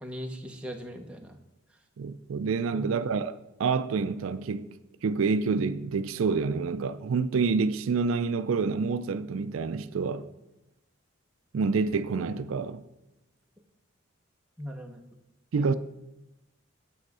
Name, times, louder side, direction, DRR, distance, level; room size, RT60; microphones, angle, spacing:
voice 1, 0.0-1.4 2.7-2.9 14.6-15.0 15.5-15.7, equal, 5° right, 0.8 m, -39 dB
voice 2, 2.0-4.7 5.0-10.3 11.5-12.8 15.5-15.7, right 4 dB, 75° right, 0.4 m, -28 dB
9.2 x 7.1 x 4.8 m
head